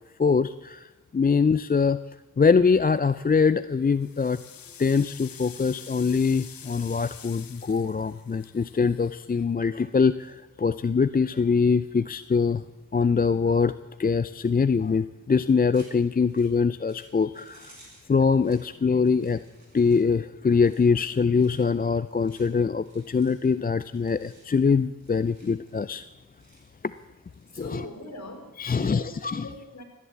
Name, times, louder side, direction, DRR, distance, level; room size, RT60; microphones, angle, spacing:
voice 1, 0.2-2.0 2.4-4.4 4.8-12.6 12.9-13.7 14.0-17.7 18.1-19.4 19.7-26.0 27.6-27.9 28.6-29.5, left 5 dB, 25° left, 14 dB, 0.5 m, -23 dB
sound 1, 3.0-3.4 3.8-10.1, left 8 dB, 75° left, 1.0 m, -47 dB
sound 2, 15.7-28.1, right 1 dB, 50° right, 7.3 m, -58 dB
voice 2, 27.5-29.1 29.4-29.8, left 2 dB, 50° left, 4 dB, 4.2 m, -40 dB
15.0 x 10.5 x 8.2 m, 1.1 s
cardioid pair, 40°, 35 cm